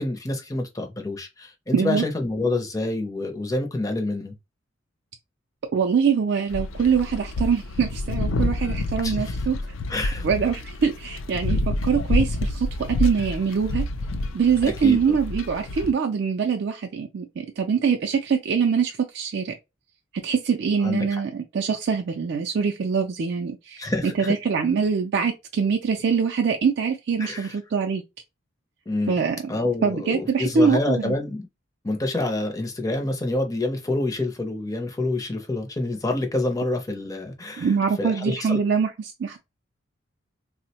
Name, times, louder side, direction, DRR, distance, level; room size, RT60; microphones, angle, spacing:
voice 1, 0.0-4.3 9.0-9.3 9.9-10.3 14.6-15.2 20.8-21.2 23.8-24.3 27.2-27.6 28.9-29.2 29.5-31.5 31.8-37.7 38.0-38.6, left 2 dB, 15° left, 0.5 m, -27 dB
voice 2, 1.7-2.0 5.7-9.6 10.2-13.8 14.3-19.5 20.2-28.0 29.1-29.4 29.8-31.2 37.6-39.4, right 6 dB, 55° right, 0.3 m, -23 dB
sound 1, 6.5-15.9, left 2 dB, 80° left, 0.4 m, -28 dB
3.6 x 2.1 x 2.7 m
head